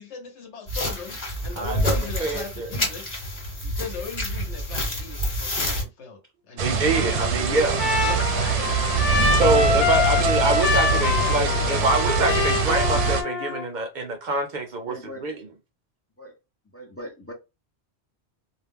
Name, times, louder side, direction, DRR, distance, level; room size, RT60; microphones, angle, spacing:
voice 1, 0.0-3.1 3.6-6.2 6.5-7.3 8.0-9.8 10.9-11.9, left 5 dB, 85° left, 1.1 m, -38 dB
sound 1, 0.7-5.8, left 1 dB, 40° left, 1.1 m, -28 dB
voice 2, 1.6-2.7 6.6-7.8 9.4-15.5, right 3 dB, 55° right, 0.5 m, -25 dB
sound 2, 6.6-13.2, right 4 dB, 80° right, 0.9 m, -23 dB
Trumpet, 6.9-13.7, left 3 dB, 65° left, 0.8 m, -25 dB
voice 3, 14.9-15.2 16.2-16.4 16.7-17.3, equal, 20° left, 0.4 m, -39 dB
2.3 x 2.0 x 3.4 m
omnidirectional pair, 1.1 m